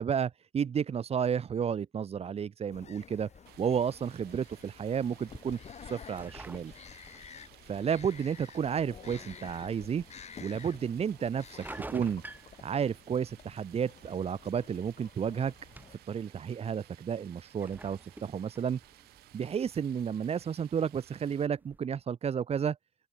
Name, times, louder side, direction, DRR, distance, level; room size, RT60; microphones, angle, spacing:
voice 1, 0.0-3.3 3.6-6.7 7.6-10.0 10.4-12.2 12.6-15.5 15.9-18.8 19.3-22.8, right 7 dB, 35° right, 1.1 m, -32 dB
sound 1, 2.7-16.0, left 7 dB, 40° left, 2.0 m, -51 dB
sound 2, 3.2-21.8, right 2 dB, 10° right, 2.5 m, -53 dB
Stream, 3.5-21.5, right 17 dB, 65° right, 2.7 m, -58 dB
open air
hypercardioid pair, 65°, 18 cm